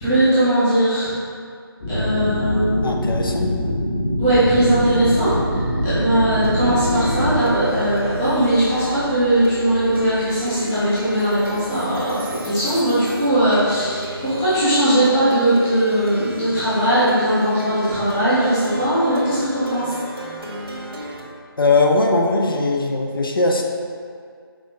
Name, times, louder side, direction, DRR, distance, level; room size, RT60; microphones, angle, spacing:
voice 1, 0.0-1.1 1.9-2.9 4.2-5.3 5.8-19.9, right 1 dB, 5° left, -14 dB, 0.4 m, -19 dB
sound 1, 1.8-7.4, left 1 dB, 25° left, 0.9 m, -24 dB
voice 2, 2.8-3.5 21.6-23.6, left 3 dB, 60° left, 1 dB, 0.5 m, -19 dB
Plucked string instrument, 5.2-21.2, right 1 dB, 75° right, 1.1 m, -33 dB
5.0 x 2.8 x 3.5 m, 2.2 s
figure-of-eight pair, 155°, 13 cm